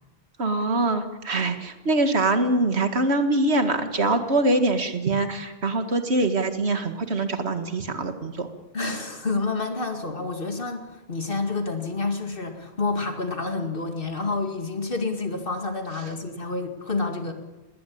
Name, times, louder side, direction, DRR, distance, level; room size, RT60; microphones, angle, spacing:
voice 1, 0.4-8.5, right 2 dB, 85° right, 8 dB, 2.1 m, -23 dB
voice 2, 8.7-17.3, left 3 dB, 55° left, 5 dB, 2.4 m, -29 dB
19.5 x 19.0 x 8.6 m, 1.1 s
omnidirectional pair, 1.1 m